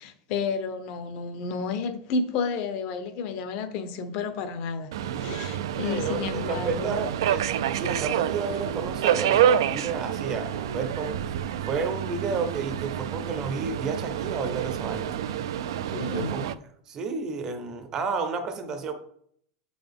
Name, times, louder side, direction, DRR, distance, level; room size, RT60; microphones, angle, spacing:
voice 1, 0.0-7.1 15.9-16.4, left 5 dB, 35° left, 0.6 m, -31 dB
Subway metro underground, 4.9-16.5, right 9 dB, 80° right, 0.3 m, -28 dB
voice 2, 5.7-7.5 7.7-15.2 16.0-16.5 16.9-18.9, right 4 dB, 20° right, 0.6 m, -31 dB
8.1 x 3.9 x 3.5 m
supercardioid pair, 180°, 2 cm